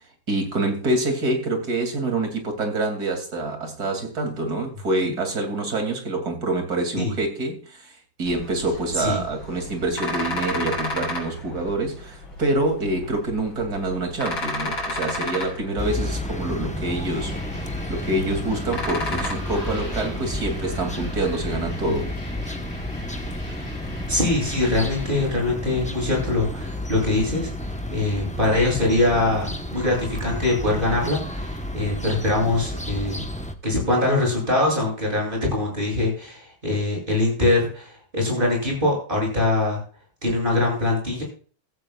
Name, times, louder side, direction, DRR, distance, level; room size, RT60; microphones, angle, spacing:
voice 1, 0.3-17.4 17.9-22.1, right 2 dB, 50° right, 3.2 m, -26 dB
sound 1, 8.2-19.3, left 1 dB, 80° left, 4.7 m, -33 dB
sound 2, 15.8-33.5, left 1 dB, 10° left, 0.5 m, -31 dB
sound 3, 17.1-25.3, left 1 dB, 30° left, 4.7 m, -40 dB
voice 2, 24.1-33.3 33.6-39.8 40.2-41.2, left 2 dB, 25° right, 8.1 m, -23 dB
15.5 x 14.5 x 2.4 m
omnidirectional pair, 2.1 m